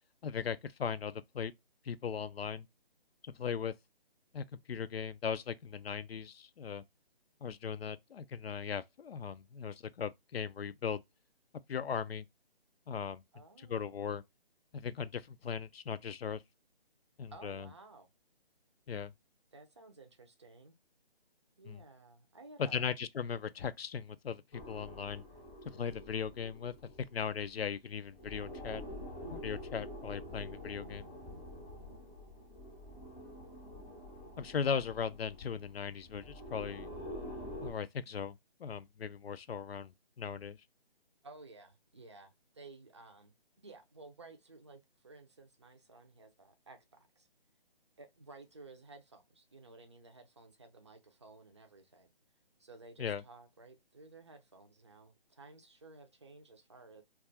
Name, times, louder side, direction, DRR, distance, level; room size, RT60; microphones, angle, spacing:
voice 1, 0.2-1.5 1.9-2.7 3.2-3.7 4.3-6.8 7.4-11.0 11.7-12.2 12.9-13.2 13.7-14.2 14.7-16.4 17.2-17.7 18.9-19.1 21.7-21.8 22.6-25.2 25.7-28.8 29.3-31.1 34.4-36.9 37.6-40.6 53.0-53.2, left 7 dB, 80° left, 0.4 m, -38 dB
voice 2, 13.3-14.0 17.3-18.1 19.5-20.7 21.6-22.9 41.2-47.3 48.0-52.1 52.6-57.0, right 3 dB, 30° right, 0.4 m, -55 dB
sound 1, 24.5-27.7 28.0-37.7, left 1 dB, 15° left, 0.6 m, -47 dB
2.4 x 2.3 x 3.8 m
figure-of-eight pair, 155°, 30 cm